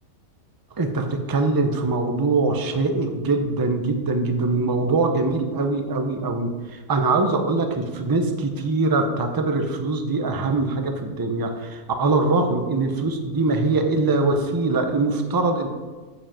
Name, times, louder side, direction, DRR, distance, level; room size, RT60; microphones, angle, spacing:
voice 1, 0.8-15.7, right 3 dB, 25° right, 5 dB, 0.5 m, -23 dB
7.1 x 5.4 x 7.4 m, 1.4 s
omnidirectional pair, 1.6 m